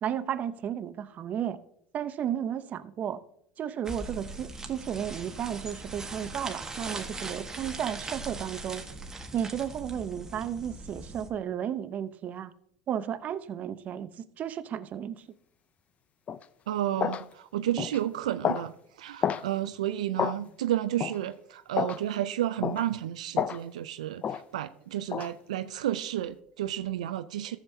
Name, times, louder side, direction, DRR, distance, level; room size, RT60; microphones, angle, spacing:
voice 1, 0.0-1.6 1.9-3.2 3.6-8.8 9.3-12.5 12.9-15.2, right 9 dB, 45° right, 0.6 m, -33 dB
sound 1, 3.8-11.3, right 2 dB, 15° right, 1.4 m, -40 dB
sound 2, 16.3-16.4 17.0-17.2 17.8-18.0 18.4-18.7 19.2-19.5 20.2-20.4 21.0-21.2 21.8-22.0 22.6-22.8 23.4-23.6 24.2-24.4 25.1-25.3, left 8 dB, 40° left, 0.5 m, -29 dB
voice 2, 16.7-18.7 19.0-27.6, right 12 dB, 90° right, 0.3 m, -31 dB
14.0 x 7.2 x 2.7 m
hypercardioid pair, 85°, 4 cm